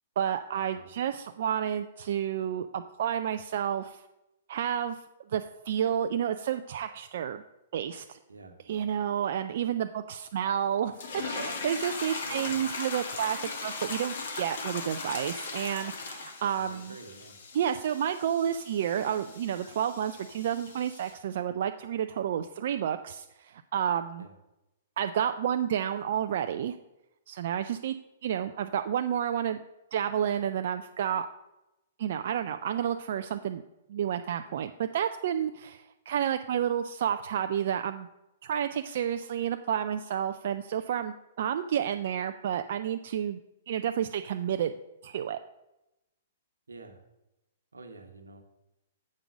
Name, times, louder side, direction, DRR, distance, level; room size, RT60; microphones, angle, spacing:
voice 1, 0.2-4.0 4.5-5.0 5.3-7.4 7.7-8.2 8.7-16.9 17.5-24.3 25.0-26.8 27.3-28.0 28.2-29.6 29.9-31.3 32.0-33.6 33.9-38.1 38.4-43.4 43.7-44.7 45.0-45.4, right 9 dB, 60° right, 7 dB, 0.4 m, -30 dB
sound 1, 10.9-21.1, left 4 dB, 70° left, 1.4 m, -39 dB
voice 2, 12.2-12.7 16.5-17.4 24.2-24.4 46.7-47.0 47.7-48.4, right 3 dB, 90° right, 6 dB, 1.2 m, -48 dB
7.5 x 5.2 x 6.0 m, 0.92 s
hypercardioid pair, 120°, 0 cm